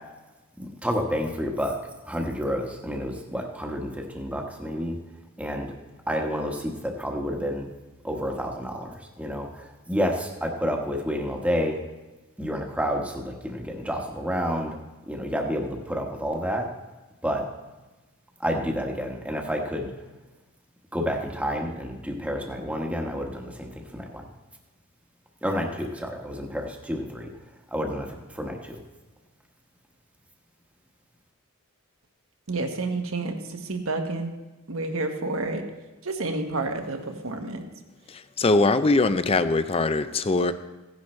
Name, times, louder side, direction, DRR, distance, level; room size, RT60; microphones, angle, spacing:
voice 1, 0.6-1.8 2.0-5.0 5.4-5.7 6.1-7.7 8.0-11.8 12.4-14.8 15.1-16.7 17.2-17.5 18.4-19.9 20.9-24.2 25.4-27.3 27.7-28.8, equal, 5° right, 1 dB, 1.2 m, -29 dB
voice 2, 32.5-34.3 34.7-35.6 36.0-37.6, right 2 dB, 70° right, 5 dB, 1.3 m, -29 dB
voice 3, 38.4-40.5, left 3 dB, 25° left, 12 dB, 0.4 m, -21 dB
16.5 x 10.5 x 3.2 m, 1.1 s
head